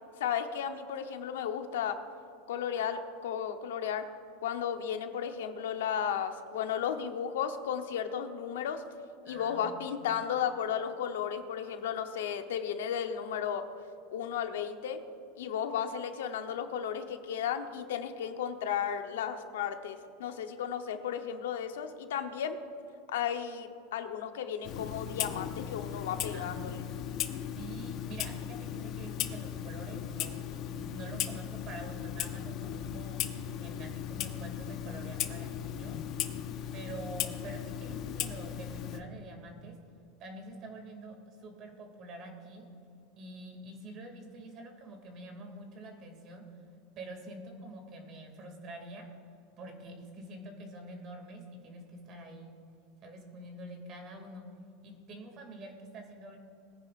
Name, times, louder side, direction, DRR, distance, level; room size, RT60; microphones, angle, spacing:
voice 1, 0.2-2.0 2.5-4.1 4.4-8.8 9.3-13.7 14.1-15.0 15.4-22.6 23.1-26.8, left 8 dB, 90° left, 7 dB, 0.9 m, -34 dB
voice 2, 9.2-10.1 26.3-30.4 30.7-33.2 33.6-36.0 36.7-39.7 40.2-42.7 43.2-46.4 47.0-49.1 49.6-52.5 53.0-54.5 54.8-56.4, right 1 dB, 35° right, 3 dB, 2.4 m, -46 dB
Clock, 24.6-39.0, left 10 dB, 40° left, 0.8 m, -37 dB
21.0 x 9.8 x 2.5 m, 2.6 s
supercardioid pair, 155°, 0 cm